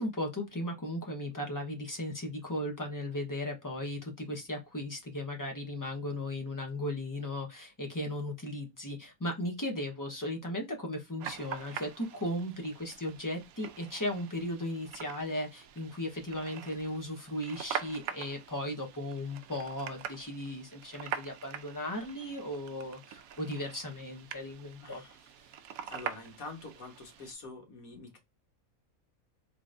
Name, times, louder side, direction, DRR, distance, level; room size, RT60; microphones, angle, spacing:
voice 1, 0.0-25.0, left 1 dB, 15° left, 0.9 m, -36 dB
sound 1, 11.2-27.3, right 8 dB, 80° right, 1.1 m, -44 dB
voice 2, 24.8-25.6 25.9-28.2, left 3 dB, 75° left, 1.8 m, -46 dB
3.9 x 3.2 x 2.5 m
omnidirectional pair, 1.5 m